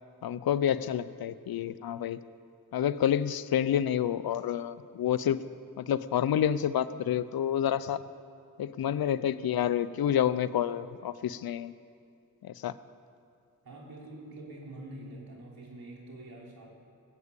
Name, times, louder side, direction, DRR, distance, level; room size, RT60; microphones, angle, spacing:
voice 1, 0.2-2.2 2.7-5.4 5.8-8.0 8.6-11.7 12.4-12.7, left 10 dB, 90° left, 15 dB, 0.6 m, -28 dB
voice 2, 9.1-9.6 13.6-16.7, right 1 dB, 85° right, -2 dB, 3.4 m, -46 dB
19.0 x 8.5 x 8.1 m, 2.4 s
cardioid pair, 70°, 35 cm